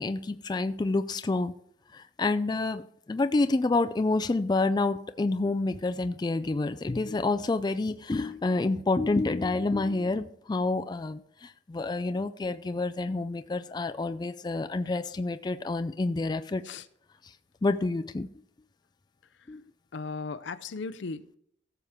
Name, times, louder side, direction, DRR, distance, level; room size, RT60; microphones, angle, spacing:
voice 1, 0.0-1.5 1.9-16.6 17.6-18.3 19.5-19.6, left 3 dB, 20° left, 10 dB, 0.3 m, -28 dB
voice 2, 19.9-21.4, left 4 dB, 75° left, 14 dB, 0.5 m, -38 dB
16.0 x 7.0 x 3.6 m, 0.70 s
head